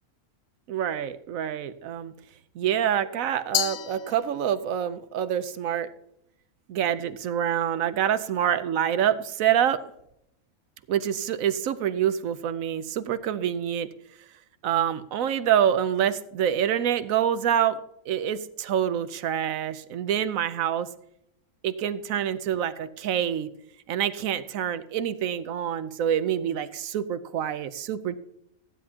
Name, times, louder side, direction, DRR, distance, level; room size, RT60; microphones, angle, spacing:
voice 1, 0.7-2.1 2.5-5.9 6.7-9.8 10.9-13.9 14.6-17.8 18.1-20.9 21.6-23.5 23.9-28.2, right 9 dB, 70° right, 13 dB, 1.0 m, -26 dB
Glass, 3.5-4.8, left 12 dB, 75° left, 1.1 m, -30 dB
15.0 x 10.0 x 2.8 m, 0.77 s
omnidirectional pair, 1.5 m